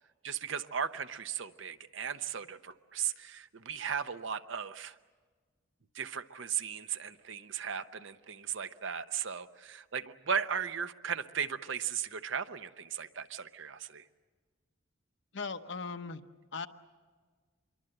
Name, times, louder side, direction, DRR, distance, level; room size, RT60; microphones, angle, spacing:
voice 1, 0.2-5.0 5.9-14.0, right 7 dB, 65° right, 11 dB, 0.8 m, -36 dB
voice 2, 15.3-16.2 16.5-16.7, left 4 dB, 55° left, 8 dB, 1.0 m, -38 dB
26.0 x 23.0 x 7.9 m, 1.5 s
head